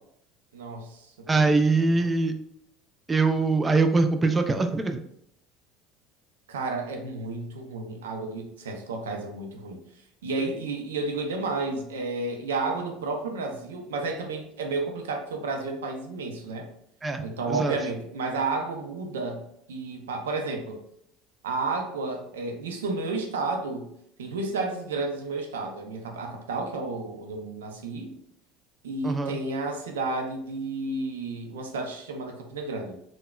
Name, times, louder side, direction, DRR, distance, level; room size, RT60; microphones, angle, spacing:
voice 1, 0.5-1.5 1.9-2.1 6.5-9.8 10.2-16.7 17.2-19.4 19.7-20.8 21.4-23.9 24.2-28.2 28.8-33.0, right 3 dB, 85° right, 3 dB, 0.4 m, -32 dB
voice 2, 1.3-2.3 3.1-5.0 17.0-17.2 17.5-17.8 29.0-29.4, right 3 dB, 20° right, 7 dB, 0.3 m, -23 dB
3.5 x 2.1 x 2.2 m, 0.74 s
hypercardioid pair, 80°, 0 cm